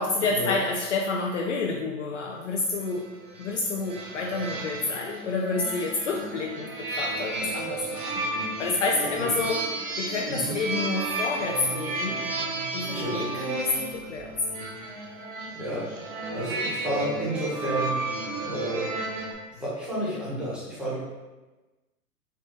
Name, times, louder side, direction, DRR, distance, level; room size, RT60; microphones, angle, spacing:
voice 1, 0.0-3.1 3.4-9.6 10.0-12.2 12.7-14.3, left 3 dB, 50° left, 0 dB, 0.5 m, -29 dB
sound 1, 2.8-19.3, right 2 dB, 35° right, 0.7 m, -33 dB
voice 2, 15.5-18.9 19.5-21.0, right 1 dB, ahead, -10 dB, 1.2 m, -31 dB
4.2 x 2.6 x 3.4 m, 1.2 s
hypercardioid pair, 120°, 47 cm